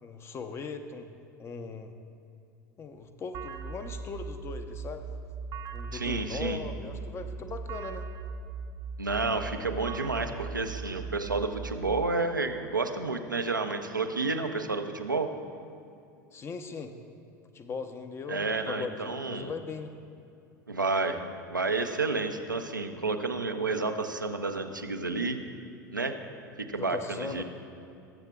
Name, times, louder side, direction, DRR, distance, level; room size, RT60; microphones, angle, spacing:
voice 1, 0.0-1.9 2.8-5.2 5.7-8.1 16.3-16.9 17.5-19.9 26.8-27.4, left 4 dB, 25° left, 8 dB, 0.6 m, -39 dB
sound 1, 3.3-12.0, right 5 dB, 40° right, 0.5 m, -39 dB
voice 2, 5.9-6.6 9.0-15.3 18.3-19.5 20.7-21.2 21.5-25.4 25.9-26.2 26.6-27.4, right 3 dB, 85° right, 5 dB, 0.5 m, -30 dB
sound 2, 11.2-15.3, equal, 90° left, 1.5 m, -52 dB
19.5 x 7.2 x 2.3 m, 2.6 s
figure-of-eight pair, 75°, 10 cm